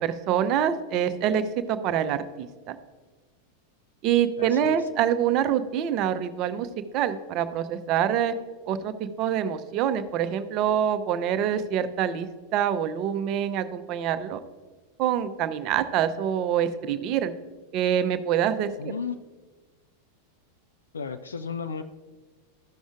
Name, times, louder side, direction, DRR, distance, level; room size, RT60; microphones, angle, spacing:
voice 1, 0.0-1.4 1.7-2.8 4.0-6.7 6.9-8.3 8.7-14.4 15.0-17.3 17.7-18.9, right 9 dB, 40° right, 11 dB, 0.6 m, -25 dB
voice 2, 4.4-4.8 18.8-19.2 20.9-21.8, left 6 dB, 70° left, 10 dB, 0.4 m, -33 dB
14.0 x 6.2 x 2.4 m, 1.3 s
figure-of-eight pair, 90°, 0 cm